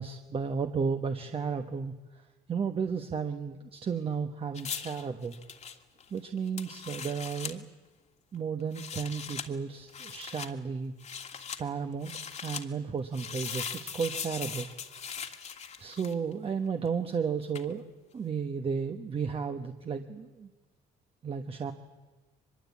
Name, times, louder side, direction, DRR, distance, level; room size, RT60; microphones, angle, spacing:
voice 1, 0.0-5.4 6.1-7.7 8.3-10.9 11.6-12.1 12.4-14.7 14.9-15.4 15.8-17.8 18.1-20.5 21.2-21.7, right 6 dB, 35° right, 6 dB, 1.2 m, -33 dB
sound 1, 4.5-7.6 8.6-9.5 9.9-10.5 11.0-11.6 12.0-12.6 13.1-16.3 17.5-17.7, left 7 dB, 40° left, 1.6 m, -40 dB
23.5 x 22.0 x 8.4 m, 1.2 s
cardioid pair, 110°, 17 cm